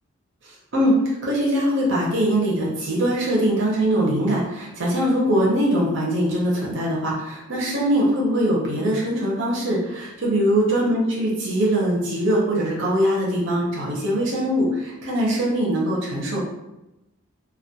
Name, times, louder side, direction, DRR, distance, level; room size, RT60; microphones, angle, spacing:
voice 1, 0.7-16.4, right 1 dB, 60° right, -5 dB, 0.6 m, -22 dB
2.2 x 2.2 x 2.7 m, 0.94 s
head